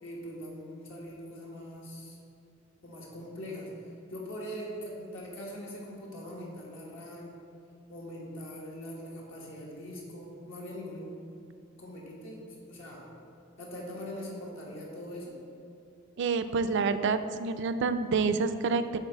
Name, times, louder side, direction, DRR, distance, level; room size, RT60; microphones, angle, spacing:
voice 1, 0.0-2.2 2.8-3.7 4.1-7.4 7.9-11.1 11.7-13.1 13.6-15.4, equal, 75° left, -4 dB, 1.4 m, -42 dB
voice 2, 16.2-19.0, right 4 dB, 60° right, 11 dB, 0.3 m, -28 dB
7.3 x 4.0 x 4.4 m, 2.7 s
head